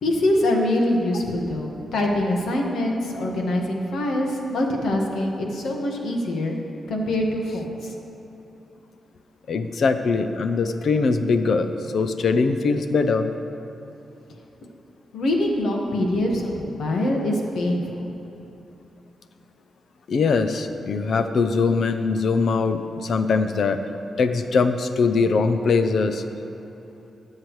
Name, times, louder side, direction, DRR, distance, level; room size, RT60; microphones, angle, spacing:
voice 1, 0.0-6.5 6.9-7.9 15.1-18.1, left 1 dB, 80° left, 1 dB, 1.6 m, -24 dB
voice 2, 9.5-13.3 20.1-23.8 24.2-26.2, left 4 dB, 60° left, 9 dB, 0.6 m, -22 dB
21.5 x 7.4 x 3.2 m, 3.0 s
wide cardioid pair, 125°, 0 cm